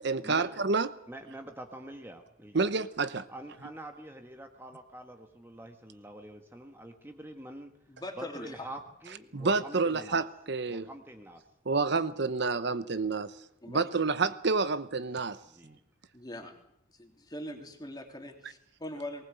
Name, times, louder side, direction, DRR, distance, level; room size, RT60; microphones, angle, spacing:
voice 1, 0.0-0.9 2.5-3.3 9.3-10.9 11.7-13.4 13.7-15.4, right 4 dB, 60° right, 14 dB, 0.9 m, -29 dB
voice 2, 1.1-2.7 3.3-7.7 8.2-10.3 10.7-11.4 15.5-15.8, right 1 dB, 10° right, 5 dB, 1.4 m, -46 dB
voice 3, 7.9-8.7 13.6-13.8 16.1-16.5 16.9-19.3, left 1 dB, 20° left, 4 dB, 3.0 m, -42 dB
19.5 x 19.5 x 8.1 m, 0.74 s
head